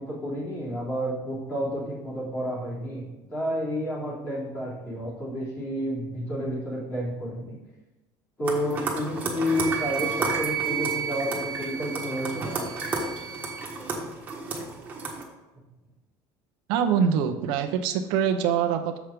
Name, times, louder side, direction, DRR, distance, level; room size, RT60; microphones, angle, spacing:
voice 1, 0.0-7.6 8.4-12.7, equal, 25° left, -6 dB, 3.1 m, -30 dB
sound 1, 8.4-15.2, right 3 dB, 15° right, 1.4 m, -33 dB
Wind instrument woodwind instrument, 9.5-13.7, right 9 dB, 50° right, 1.0 m, -33 dB
voice 2, 16.7-19.0, right 8 dB, 65° right, 6 dB, 0.7 m, -24 dB
7.2 x 5.8 x 5.1 m, 1.0 s
cardioid pair, 170°, 9 cm